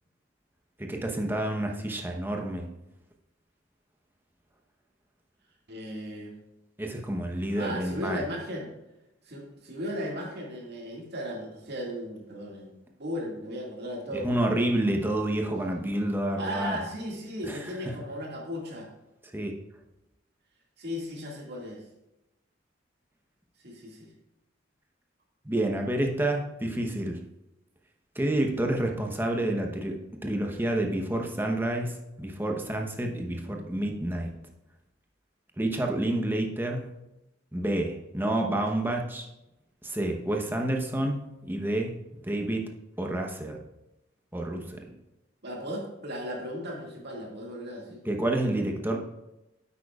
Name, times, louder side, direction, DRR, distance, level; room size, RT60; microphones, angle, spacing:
voice 1, 0.8-2.7 6.8-8.2 14.2-16.8 17.5-17.6 17.8-18.0 19.2-19.5 25.4-27.2 28.1-34.3 35.6-36.9 37.5-39.3 39.8-41.9 42.2-42.7 43.0-43.6 44.3-44.8 48.0-49.0, right 1 dB, 10° right, 2 dB, 0.9 m, -29 dB
voice 2, 5.7-6.3 7.5-8.7 9.3-14.8 16.4-18.9 20.8-21.8 23.6-24.1 33.4-34.5 45.4-48.0, equal, 60° right, -1 dB, 2.1 m, -36 dB
9.9 x 8.3 x 2.4 m, 0.92 s
head